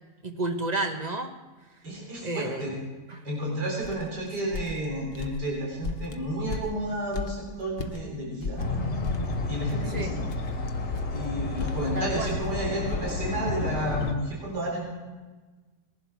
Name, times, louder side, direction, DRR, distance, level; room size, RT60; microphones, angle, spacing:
voice 1, 0.2-1.3 2.2-2.7 3.1-3.2 9.9-10.1 11.9-12.3, right 2 dB, 30° right, 5 dB, 1.1 m, -31 dB
voice 2, 1.8-2.8 3.2-8.6 9.5-10.2 11.1-14.9, right 1 dB, 85° right, -3 dB, 4.4 m, -31 dB
sound 1, 3.8-8.0 8.4-13.1, left 4 dB, 45° left, 0.9 m, -37 dB
sound 2, 8.6-14.1, left 2 dB, 80° left, 2.2 m, -31 dB
20.0 x 11.5 x 4.6 m, 1.3 s
omnidirectional pair, 1.8 m